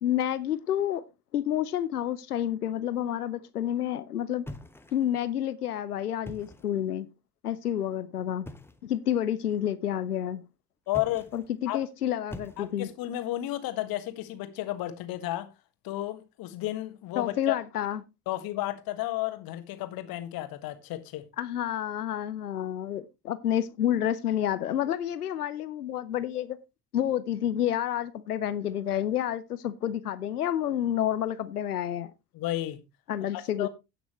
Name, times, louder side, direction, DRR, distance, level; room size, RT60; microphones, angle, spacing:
voice 1, 0.0-1.0 1.3-4.5 4.9-7.1 7.4-8.4 8.8-10.4 11.3-12.9 17.2-18.0 21.4-26.6 26.9-32.1 33.1-33.7, left 11 dB, 80° left, 0.7 m, -29 dB
sound 1, 4.5-5.3 6.1-6.8 8.4-8.9 10.9-11.5 12.3-13.0, left 1 dB, 5° left, 1.2 m, -44 dB
voice 2, 10.9-11.3 11.7-11.8 12.6-15.5 15.8-17.5 18.3-21.2 32.3-32.8 33.6-33.7, left 15 dB, 50° left, 1.6 m, -32 dB
17.0 x 6.1 x 3.1 m
figure-of-eight pair, 55°, 45 cm